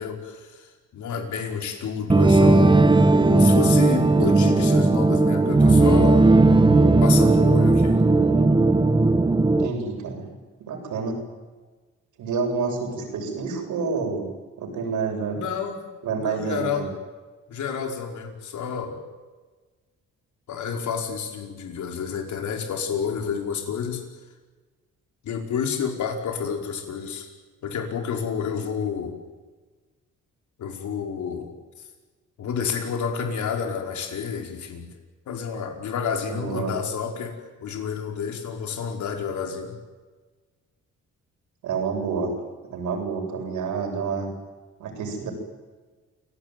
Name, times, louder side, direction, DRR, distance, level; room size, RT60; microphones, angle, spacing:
voice 1, 0.0-2.8 3.3-6.2 7.0-8.0 15.3-15.8 16.2-16.9 17.5-19.0 20.5-24.0 25.2-27.3 27.6-29.2 30.6-31.5 32.4-34.9 35.3-37.3 37.6-39.8, left 6 dB, 70° left, 2 dB, 5.5 m, -29 dB
sound 1, 2.1-9.7, right 2 dB, 15° right, 1.5 m, -17 dB
voice 2, 9.6-10.3 10.6-11.2 12.2-14.3 14.6-15.4 16.0-16.9 36.3-36.7 41.6-42.4 42.7-44.3 44.8-45.3, right 5 dB, 80° right, 3 dB, 7.6 m, -28 dB
29.0 x 18.0 x 9.5 m, 1.3 s
cardioid pair, 90°, 30 cm